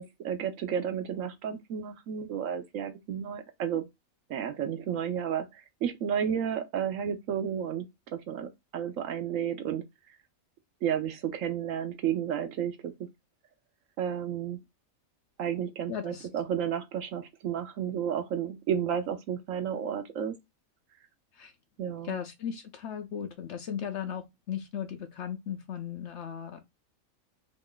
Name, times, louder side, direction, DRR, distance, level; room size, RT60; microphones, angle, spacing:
voice 1, 0.0-3.9 4.3-7.9 8.1-9.8 10.8-12.9 14.0-14.6 15.4-20.3 21.8-22.1, right 8 dB, 70° right, 0.9 m, -32 dB
voice 2, 15.9-16.3 21.3-21.5 22.0-26.6, left 8 dB, 65° left, 0.8 m, -37 dB
3.0 x 2.4 x 3.6 m
omnidirectional pair, 1.5 m